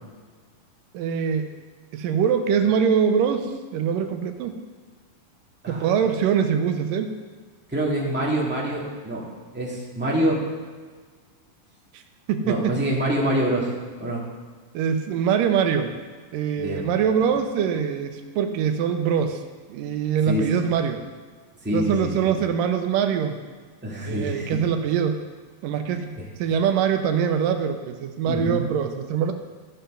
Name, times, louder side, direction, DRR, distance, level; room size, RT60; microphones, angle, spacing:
voice 1, 0.9-1.5 1.9-4.6 5.7-7.2 11.9-12.0 12.3-12.8 14.7-16.0 16.3-19.4 19.7-21.1 21.7-23.4 24.1-25.2 25.6-26.1 26.4-29.3, right 7 dB, 75° right, 7 dB, 2.2 m, -23 dB
voice 2, 7.7-9.3 9.5-10.4 12.4-13.7 14.0-14.2 16.6-16.9 20.3-20.5 21.6-22.3 23.8-24.6 26.1-26.2 28.2-28.7, right 1 dB, 5° right, -5 dB, 1.1 m, -25 dB
14.5 x 5.7 x 5.6 m, 1.5 s
omnidirectional pair, 4.1 m